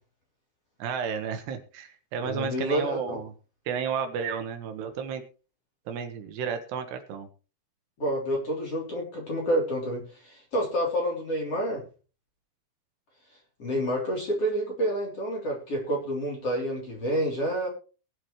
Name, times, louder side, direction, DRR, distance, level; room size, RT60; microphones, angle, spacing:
voice 1, 0.8-3.3 3.7-5.2 5.9-7.3, right 6 dB, 65° right, 7 dB, 2.9 m, -32 dB
voice 2, 2.2-3.2 8.0-11.8 13.6-17.7, equal, 35° left, -1 dB, 3.6 m, -28 dB
21.0 x 7.5 x 3.1 m, 0.35 s
omnidirectional pair, 5.9 m